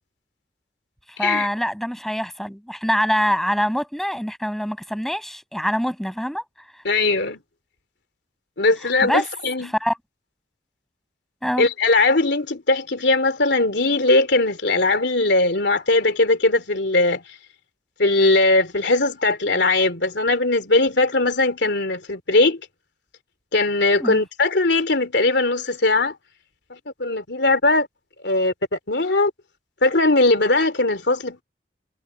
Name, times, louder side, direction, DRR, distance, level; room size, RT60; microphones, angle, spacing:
voice 1, 1.1-6.4 9.0-9.3 9.6-10.0 11.4-11.7 24.0-24.2, equal, ahead, 7.6 m, -24 dB
voice 2, 6.8-7.4 8.6-9.7 11.6-17.2 18.0-22.6 23.5-26.1 26.7-27.9 28.2-29.3 29.8-31.4, left 2 dB, 75° left, 2.8 m, -20 dB
head